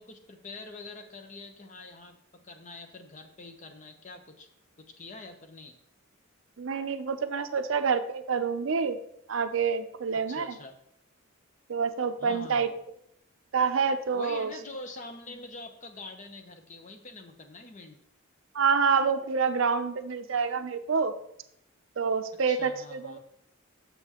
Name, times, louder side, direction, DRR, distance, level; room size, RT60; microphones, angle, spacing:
voice 1, 0.0-2.2 2.4-4.5 4.8-5.8 10.1-10.7 12.2-12.8 14.1-18.0 22.5-23.2, left 2 dB, 35° left, 6 dB, 0.7 m, -45 dB
voice 2, 6.6-9.0 9.3-10.6 11.7-12.7 13.5-14.5 18.5-21.1 22.0-23.2, right 5 dB, 65° right, 9 dB, 0.5 m, -27 dB
6.8 x 6.8 x 2.9 m, 0.74 s
head